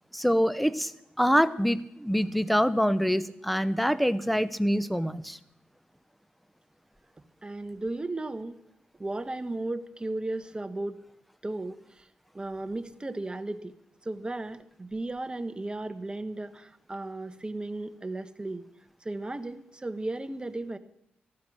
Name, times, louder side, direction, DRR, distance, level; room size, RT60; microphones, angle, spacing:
voice 1, 0.1-0.9 1.2-5.4, equal, ahead, 16 dB, 0.8 m, -25 dB
voice 2, 7.4-8.6 9.0-11.0 11.4-12.1 12.3-13.7 14.0-18.6 19.0-20.8, right 2 dB, 25° right, 12 dB, 1.1 m, -35 dB
14.5 x 12.5 x 6.2 m, 0.77 s
cardioid pair, 60°, 4 cm